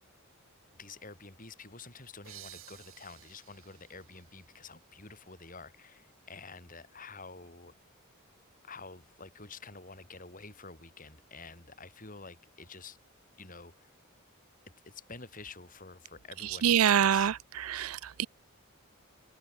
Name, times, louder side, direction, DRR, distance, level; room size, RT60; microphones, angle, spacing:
voice 1, 0.7-7.7 8.6-13.0 13.4-13.9 14.6-17.3, left 4 dB, 40° left, 6.8 m, -49 dB
sound 1, 2.2-5.7, right 13 dB, 70° right, 7.5 m, -54 dB
voice 2, 16.4-18.3, right 9 dB, 90° right, 0.5 m, -26 dB
head